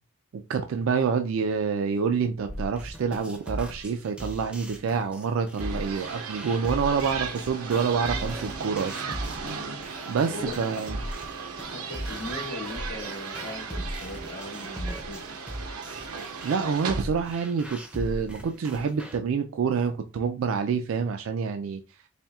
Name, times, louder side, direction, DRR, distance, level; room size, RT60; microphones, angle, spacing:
voice 1, 0.3-9.1 10.1-11.0 16.4-21.8, right 6 dB, 70° right, 0.3 m, -27 dB
sound 1, 2.5-19.2, equal, 5° right, 0.5 m, -38 dB
sound 2, 5.6-17.0, right 5 dB, 90° right, 0.8 m, -36 dB
voice 2, 10.3-10.9 11.6-15.2, left 2 dB, 85° left, 0.9 m, -39 dB
4.3 x 3.1 x 2.3 m
head